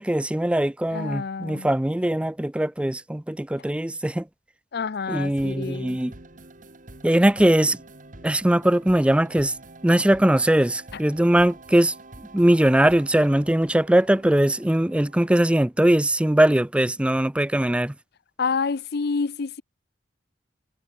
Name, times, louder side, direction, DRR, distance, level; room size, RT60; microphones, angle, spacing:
voice 1, 0.0-4.2 5.1-6.1 7.0-7.8 8.2-9.5 9.8-11.9 12.3-17.9, right 1 dB, 5° right, 0.4 m, -20 dB
voice 2, 0.9-1.7 4.7-6.0 18.4-19.6, left 5 dB, 60° left, 0.6 m, -28 dB
sound 1, 5.2-15.6, right 2 dB, 45° right, 2.5 m, -47 dB
head